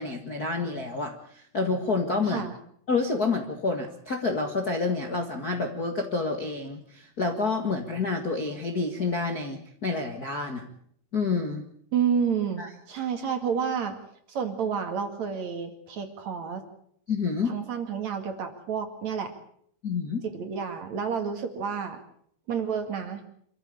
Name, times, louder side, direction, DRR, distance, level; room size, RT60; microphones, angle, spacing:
voice 1, 0.0-2.5 2.9-10.6 11.1-11.6 12.6-12.7 17.1-17.5 19.8-20.2, left 4 dB, 40° left, 3 dB, 1.5 m, -28 dB
voice 2, 2.2-2.6 11.9-13.9 14.3-16.6 17.4-19.3 20.3-22.0 22.5-23.2, right 7 dB, 50° right, 6 dB, 3.2 m, -30 dB
27.0 x 14.5 x 8.4 m, 0.66 s
omnidirectional pair, 4.3 m